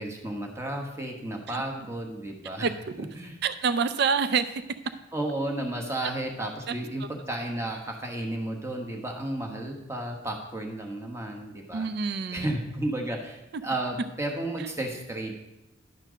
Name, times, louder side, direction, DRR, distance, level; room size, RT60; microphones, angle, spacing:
voice 1, 0.0-2.7 3.0-3.4 5.1-15.3, right 1 dB, 15° right, 1 dB, 1.2 m, -33 dB
voice 2, 3.4-4.6 6.7-6.8 11.7-12.5 14.6-14.7, right 5 dB, 55° right, 11 dB, 0.4 m, -27 dB
11.0 x 4.4 x 6.3 m, 0.94 s
head